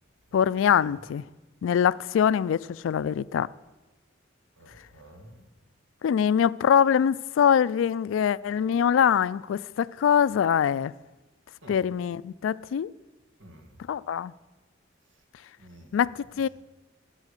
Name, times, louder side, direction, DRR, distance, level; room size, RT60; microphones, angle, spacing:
voice 1, 0.3-1.2 1.6-3.5 6.0-10.9 11.7-12.9 13.9-14.3 15.9-16.5, left 8 dB, 80° left, 0.3 m, -23 dB
voice 2, 4.6-5.5 11.6-11.8 13.4-13.7 15.6-16.0, equal, 75° right, 1.8 m, -50 dB
15.5 x 6.3 x 6.7 m
head